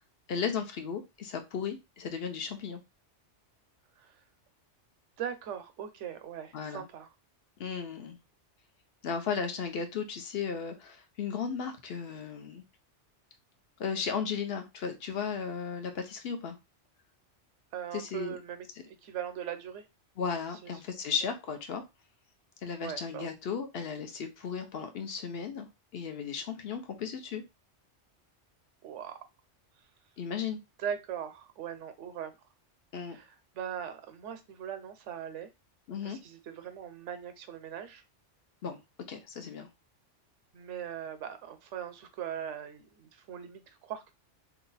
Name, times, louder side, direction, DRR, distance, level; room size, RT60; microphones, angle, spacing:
voice 1, 0.3-2.8 6.5-6.8 7.6-8.2 9.0-12.6 13.8-16.6 17.9-18.4 20.2-21.8 22.6-25.7 25.9-27.4 30.2-30.6 32.9-33.2 35.9-36.2 38.6-38.8 39.1-39.7, left 6 dB, 65° left, 6 dB, 0.8 m, -35 dB
voice 2, 5.2-7.1 17.7-19.9 20.6-20.8 22.8-23.3 28.8-29.2 30.8-32.4 33.1-35.5 36.0-38.0 40.5-44.1, right 9 dB, 80° right, 9 dB, 0.9 m, -40 dB
2.9 x 2.3 x 3.9 m, 0.23 s
omnidirectional pair, 1.2 m